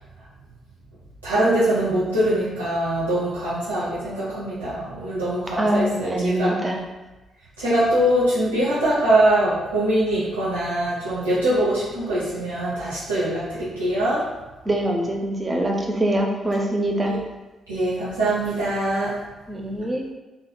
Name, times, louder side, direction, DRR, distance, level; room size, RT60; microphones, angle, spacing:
voice 1, 1.2-6.8 7.6-14.3 17.0-17.2 17.7-19.1, right 1 dB, 85° right, -11 dB, 0.5 m, -23 dB
voice 2, 5.6-6.8 14.7-17.2 19.5-20.0, right 1 dB, 25° right, 1 dB, 0.5 m, -23 dB
2.1 x 2.0 x 3.0 m, 1.1 s
figure-of-eight pair, 40°, 0 cm